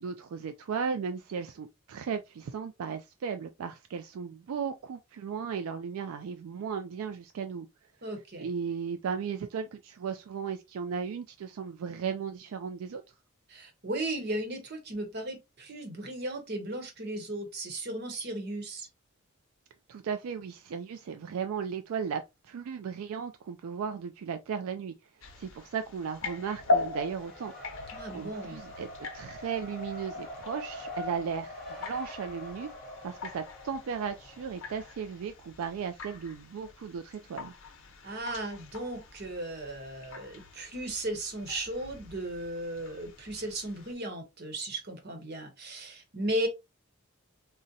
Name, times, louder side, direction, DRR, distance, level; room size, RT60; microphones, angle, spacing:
voice 1, 0.0-7.7 8.0-8.1 8.4-13.0 19.9-24.9 25.3-32.7 33.0-37.5, right 6 dB, 80° right, 0.3 m, -36 dB
voice 2, 8.0-8.5 13.5-18.9 27.9-28.6 38.0-46.5, right 1 dB, 50° right, 0.9 m, -36 dB
sound 1, 25.2-43.9, left 2 dB, 70° left, 0.8 m, -40 dB
Race car auto racing, 26.2-35.2, left 2 dB, ahead, 1.1 m, -44 dB
3.7 x 2.1 x 2.6 m
head